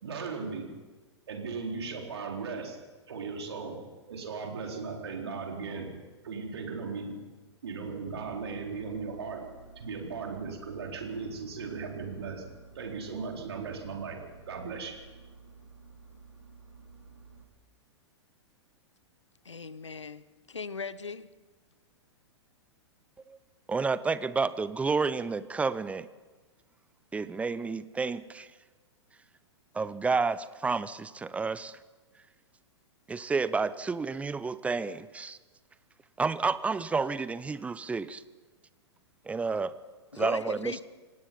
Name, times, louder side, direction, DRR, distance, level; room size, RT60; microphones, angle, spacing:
voice 1, 0.0-0.7 1.3-2.8 3.1-3.8 4.1-5.9 6.2-7.2 7.6-9.4 9.8-12.4 12.7-14.2 14.5-15.0, right 5 dB, 60° right, 4.2 m, -37 dB
Engine, 7.8-17.5, right 4 dB, 85° right, 3.4 m, -53 dB
voice 2, 19.4-21.3 40.1-40.8, left 5 dB, 75° left, 0.9 m, -39 dB
voice 3, 23.7-26.1 27.1-28.5 29.7-31.8 33.1-35.4 36.2-38.2 39.3-39.7 40.2-40.8, right 4 dB, 10° right, 0.6 m, -30 dB
27.5 x 17.5 x 5.5 m
figure-of-eight pair, 105°, 15 cm